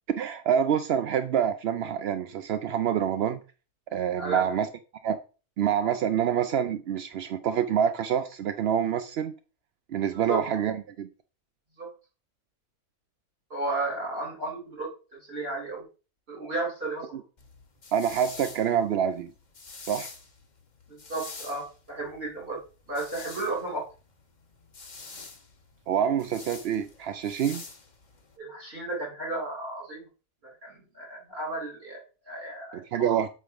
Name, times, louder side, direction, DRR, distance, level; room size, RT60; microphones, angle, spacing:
voice 1, 0.2-3.4 3.9-4.7 5.0-5.2 5.6-9.3 9.9-11.1 17.9-19.3 19.9-20.1 25.9-27.6 32.7-33.3, right 8 dB, 70° right, 0.6 m, -26 dB
voice 2, 4.2-4.5 10.2-10.4 11.8-11.9 13.5-14.9 15.2-15.8 16.3-17.2 20.9-22.6 22.9-23.9 28.4-30.0 30.4-33.2, right 2 dB, 40° right, 4.5 m, -33 dB
sound 1, 17.4-28.3, left 3 dB, 30° left, 1.1 m, -46 dB
8.3 x 3.6 x 5.8 m
omnidirectional pair, 1.6 m